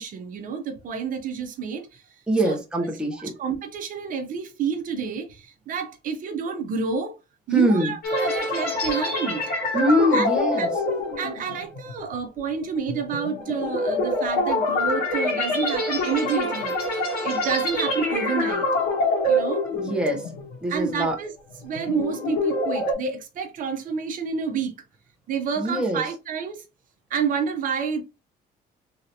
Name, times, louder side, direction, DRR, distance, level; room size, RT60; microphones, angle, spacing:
voice 1, 0.0-2.1 2.4-2.6 3.1-7.2 7.5-9.4 10.1-10.3 10.6-10.7 11.2-18.7 19.3-19.7 20.7-21.3 21.6-24.7 25.3-26.7 27.1-28.0, right 6 dB, 50° right, 0.6 m, -29 dB
voice 2, 2.3-3.3 7.5-7.9 9.7-10.7 19.7-20.3 20.6-21.2 25.6-26.0, equal, 5° right, 0.7 m, -23 dB
sound 1, 8.0-20.6 20.9-21.1 21.6-22.9, left 1 dB, 70° left, 1.7 m, -25 dB
3.3 x 2.7 x 2.6 m
cardioid pair, 145°, 17 cm